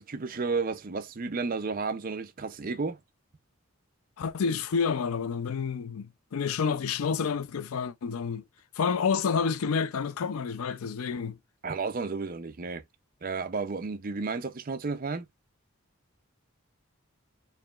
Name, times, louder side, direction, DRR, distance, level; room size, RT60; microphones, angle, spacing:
voice 1, 0.0-3.0 11.6-12.8 13.2-15.3, right 4 dB, 40° right, 0.5 m, -32 dB
voice 2, 4.2-8.4 8.8-11.4, left 6 dB, 85° left, 0.4 m, -29 dB
4.7 x 2.7 x 2.4 m
head